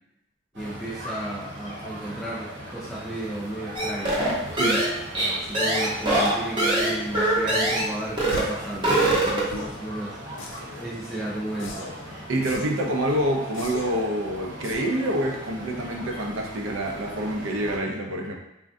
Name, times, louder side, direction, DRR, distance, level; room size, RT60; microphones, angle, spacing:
voice 1, 0.5-4.2 5.2-10.2 10.8-11.9 17.1-17.2, right 1 dB, ahead, -6 dB, 0.3 m, -34 dB
sound 1, 0.5-17.8, right 1 dB, 65° right, 0.9 m, -39 dB
sound 2, 3.8-7.9 8.2-8.5 8.7-9.6, right 1 dB, 25° right, 0.7 m, -23 dB
voice 2, 4.5-4.8 12.3-18.3, right 1 dB, 80° right, 1 dB, 0.5 m, -27 dB
sound 3, 8.3-8.7 9.5-9.8 10.4-10.9 11.6-12.0 12.4-12.8 13.5-14.0 14.6-15.0, left 4 dB, 75° left, 0.4 m, -39 dB
3.4 x 2.2 x 2.5 m, 0.91 s
head